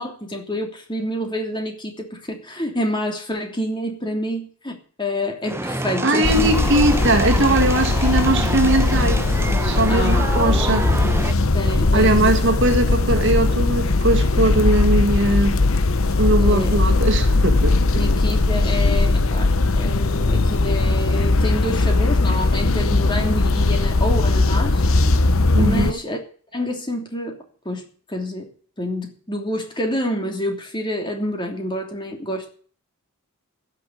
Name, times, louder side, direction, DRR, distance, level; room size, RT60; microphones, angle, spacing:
voice 1, 0.0-6.5 9.9-10.3 11.5-12.3 16.4-16.9 17.9-24.9 25.6-26.2 26.5-27.4 27.6-28.5 28.8-32.5, left 1 dB, 20° left, 3.0 m, -27 dB
sound 1, 5.4-11.3, right 2 dB, 10° right, 0.8 m, -28 dB
voice 2, 6.0-9.2 9.6-10.8 11.9-15.6 16.2-17.8 25.5-26.0, right 1 dB, 55° right, 1.9 m, -20 dB
sound 2, 6.2-25.9, left 2 dB, 65° left, 1.0 m, -19 dB
16.0 x 6.9 x 7.9 m
head